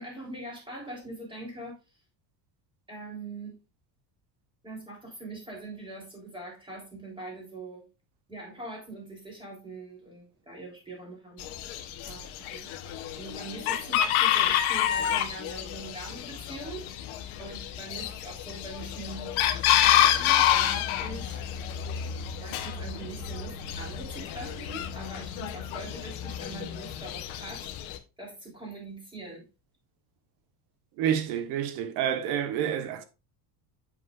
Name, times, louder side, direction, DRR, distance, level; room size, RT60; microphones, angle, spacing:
voice 1, 0.0-1.8 2.9-3.6 4.6-7.8 8.3-11.5 12.0-12.3 12.5-17.0 17.4-19.3 19.8-21.4 22.4-27.7 28.2-29.5, right 2 dB, 10° right, 3.6 m, -42 dB
Chicken rooster, 11.4-28.0, left 11 dB, 70° left, 1.2 m, -28 dB
voice 2, 31.0-33.0, right 9 dB, 80° right, 1.4 m, -28 dB
7.6 x 7.2 x 2.5 m
cardioid pair, 155°, 49 cm